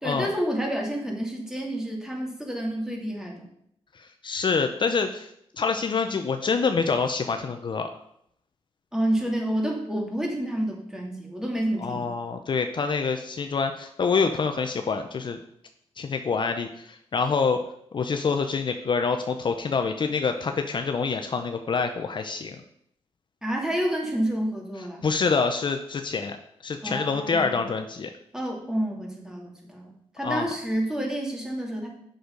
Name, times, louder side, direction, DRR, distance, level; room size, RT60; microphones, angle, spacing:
voice 1, 0.0-3.5 8.9-12.1 23.4-25.1 26.8-27.7 28.3-31.9, right 1 dB, 5° right, 0 dB, 2.3 m, -29 dB
voice 2, 3.9-7.9 11.8-15.4 16.0-17.6 17.9-22.6 25.0-26.4 26.6-28.1 30.2-30.5, left 5 dB, 45° left, 6 dB, 0.6 m, -26 dB
7.8 x 6.4 x 5.1 m, 0.73 s
cardioid pair, 95°, 11 cm